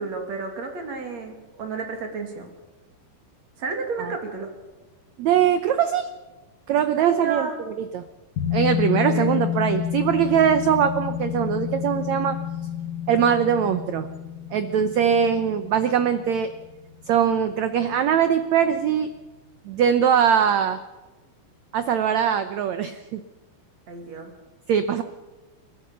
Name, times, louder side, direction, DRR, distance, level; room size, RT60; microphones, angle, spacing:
voice 1, 0.0-2.5 3.6-4.5 7.0-7.5 9.1-9.3 23.9-24.3, right 4 dB, 50° right, 4 dB, 3.4 m, -31 dB
voice 2, 5.2-6.1 6.7-8.0 8.5-12.4 13.1-14.1 14.5-16.5 17.1-19.1 19.6-20.8 21.7-23.2 24.7-25.0, right 8 dB, 85° right, 10 dB, 1.5 m, -21 dB
sound 1, 8.4-17.5 17.8-17.9, left 10 dB, 55° left, 2.4 m, -29 dB
29.0 x 13.0 x 6.9 m, 1.2 s
omnidirectional pair, 4.4 m